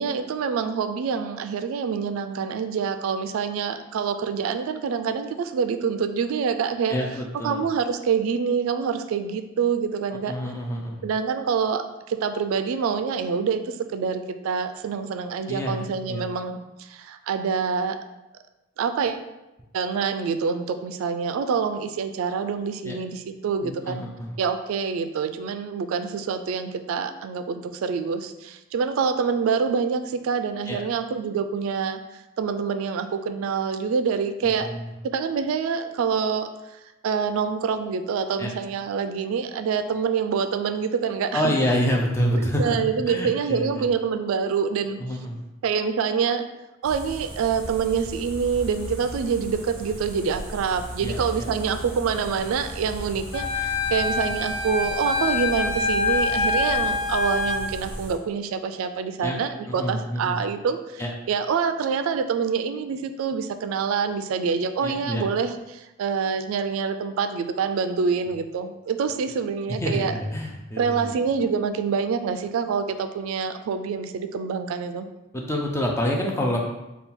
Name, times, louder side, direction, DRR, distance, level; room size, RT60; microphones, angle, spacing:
voice 1, 0.0-7.0 7.4-10.4 11.0-18.0 18.8-19.2 19.7-24.0 24.4-32.0 32.4-34.7 35.0-36.5 37.0-41.5 42.4-45.0 45.6-46.4 46.8-61.0 61.3-70.1 70.8-75.1, right 6 dB, 85° right, 10 dB, 0.3 m, -26 dB
voice 2, 6.9-7.6 10.3-11.0 15.5-16.3 22.8-23.0 23.6-24.3 30.7-30.8 34.4-34.9 38.4-38.5 41.3-42.8 43.1-43.9 45.0-45.4 51.0-51.5 59.2-59.4 59.7-60.4 61.0-61.1 64.8-65.2 69.7-71.2 75.3-76.6, equal, 15° left, 0 dB, 0.4 m, -27 dB
sound 1, 46.8-58.1, equal, 30° right, 0.9 m, -37 dB
Wind instrument woodwind instrument, 53.3-57.6, left 3 dB, 70° left, 0.6 m, -25 dB
3.6 x 2.3 x 4.1 m, 0.97 s
head